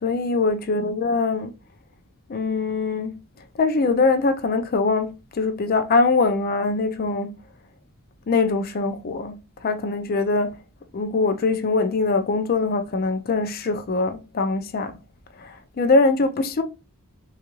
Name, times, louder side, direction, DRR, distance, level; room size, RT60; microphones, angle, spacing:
voice 1, 0.0-1.6 2.3-3.2 3.6-7.4 8.3-10.6 10.9-15.0 15.4-16.6, left 3 dB, 45° left, 0.4 m, -22 dB
3.7 x 2.4 x 2.9 m
head